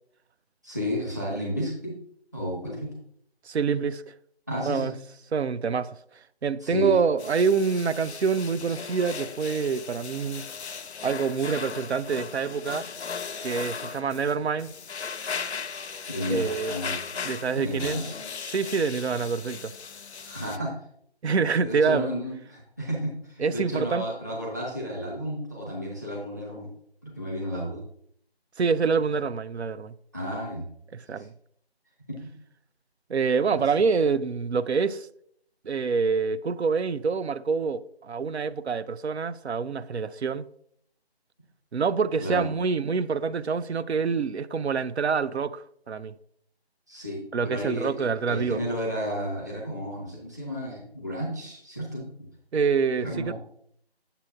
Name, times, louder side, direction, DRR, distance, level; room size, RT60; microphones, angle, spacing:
voice 1, 0.6-1.9 2.3-2.9 4.5-4.9 6.6-7.0 16.1-17.0 17.5-18.0 20.2-20.7 21.6-26.7 27.0-27.8 29.1-29.2 30.1-30.7 31.1-31.3 32.1-32.3 33.5-33.6 42.2-42.5 46.9-52.3 53.0-53.3, equal, 15° right, 0.8 m, -32 dB
voice 2, 3.5-4.1 4.6-4.9 5.3-6.0 6.4-10.4 11.0-12.9 13.4-14.7 16.3-16.8 17.2-18.0 18.5-19.7 21.2-22.1 23.4-24.1 28.6-29.9 30.9-31.3 33.1-35.1 35.6-40.5 41.7-46.1 47.3-48.6 52.5-53.3, right 5 dB, 85° right, 0.5 m, -26 dB
sound 1, 7.2-20.6, left 6 dB, 90° left, 0.5 m, -37 dB
7.4 x 6.7 x 2.5 m
figure-of-eight pair, 160°, 32 cm